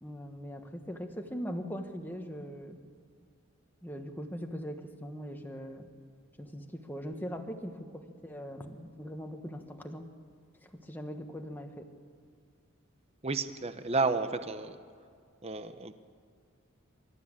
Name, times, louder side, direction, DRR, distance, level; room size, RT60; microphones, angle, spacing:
voice 1, 0.0-2.8 3.8-5.9 6.4-10.1 10.6-11.9, equal, 10° left, 4 dB, 1.3 m, -41 dB
voice 2, 13.2-14.8 15.4-16.0, right 3 dB, 30° right, 10 dB, 0.9 m, -31 dB
25.0 x 13.0 x 8.7 m, 2.1 s
head